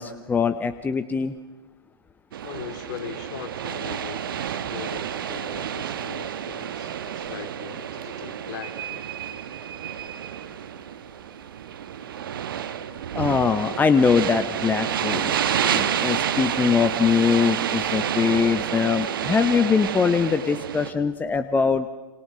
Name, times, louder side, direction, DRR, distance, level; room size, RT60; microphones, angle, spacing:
voice 1, 0.0-1.3 13.1-21.9, left 5 dB, 15° left, 11 dB, 1.0 m, -22 dB
sound 1, 2.3-20.9, right 9 dB, 65° right, 1.6 m, -29 dB
voice 2, 2.4-9.1, left 10 dB, 50° left, 7 dB, 3.1 m, -40 dB
27.5 x 26.5 x 6.3 m, 1.2 s
figure-of-eight pair, 100°, 12 cm